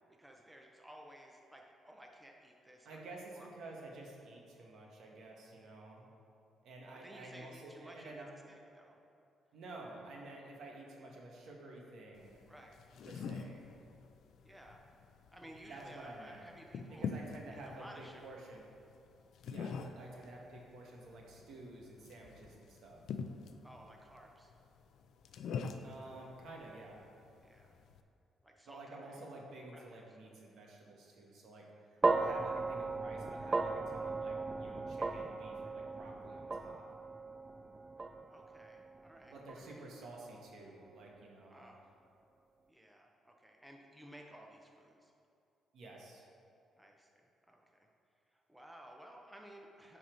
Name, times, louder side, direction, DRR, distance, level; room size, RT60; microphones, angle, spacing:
voice 1, 0.2-3.0 3.3-3.5 6.9-9.0 12.5-12.8 14.4-14.8 15.3-17.1 17.5-18.4 23.6-24.5 27.4-27.8 28.4-29.3 29.7-30.2 38.3-39.9 41.5-41.8 42.7-45.1 46.8-47.9 48.3-50.0, right 1 dB, 5° right, 1 dB, 0.8 m, -56 dB
voice 2, 2.8-6.0 6.6-8.3 9.5-12.4 13.0-13.7 15.7-16.4 16.9-18.6 19.5-23.0 25.8-27.1 28.7-36.8 39.3-41.7 45.7-46.2, right 2 dB, 70° right, -1 dB, 1.4 m, -51 dB
sound 1, 12.1-28.0, left 5 dB, 75° left, 0.4 m, -46 dB
sound 2, 32.0-40.4, right 3 dB, 25° right, 0.3 m, -37 dB
9.8 x 4.2 x 4.6 m, 2.6 s
cardioid pair, 90°, 0 cm